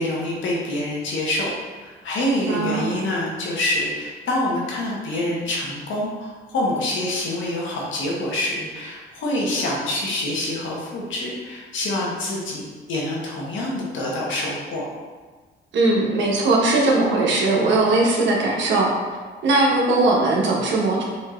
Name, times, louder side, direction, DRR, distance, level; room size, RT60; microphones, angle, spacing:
voice 1, 0.0-1.5 1.8-12.6 12.9-14.8, left 1 dB, 75° left, -3 dB, 1.1 m, -26 dB
voice 2, 2.5-2.9 15.7-18.9 19.4-21.1, right 2 dB, 70° right, -2 dB, 1.0 m, -19 dB
5.4 x 2.8 x 2.4 m, 1.4 s
cardioid pair, 90°, 20 cm